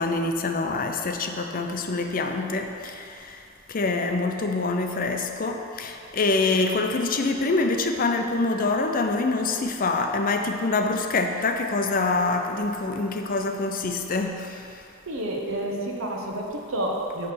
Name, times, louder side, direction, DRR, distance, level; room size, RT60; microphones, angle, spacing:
voice 1, 0.0-14.7, left 3 dB, 40° left, 4 dB, 0.5 m, -25 dB
voice 2, 15.1-17.3, right 1 dB, 75° right, 0 dB, 1.0 m, -29 dB
9.6 x 3.3 x 6.8 m, 2.8 s
head